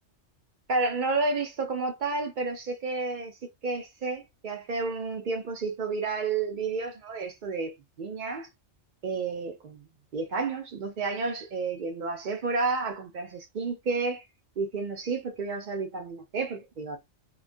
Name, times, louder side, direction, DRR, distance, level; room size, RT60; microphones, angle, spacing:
voice 1, 0.7-3.4 3.6-8.5 9.0-14.2 14.6-17.0, right 3 dB, 55° right, 0.6 m, -31 dB
2.3 x 2.2 x 2.4 m
omnidirectional pair, 1.2 m